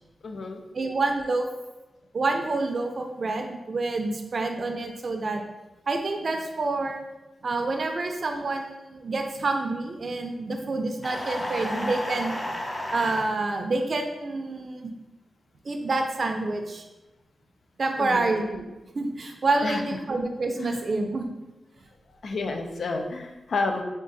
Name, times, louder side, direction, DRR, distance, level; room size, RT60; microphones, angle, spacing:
voice 1, 0.2-0.6 18.0-18.3 19.6-19.8 20.6-20.8 22.2-23.8, left 3 dB, 65° left, 4 dB, 0.5 m, -30 dB
voice 2, 0.7-1.5 2.1-5.4 5.9-7.0 7.4-12.5 12.9-14.9 15.6-16.8 17.8-18.6 18.9-21.3, right 3 dB, 50° right, 4 dB, 0.5 m, -28 dB
sound 1, 11.0-13.3, left 1 dB, 20° left, 0.6 m, -32 dB
3.6 x 2.5 x 4.0 m, 1.1 s
wide cardioid pair, 90°, 0 cm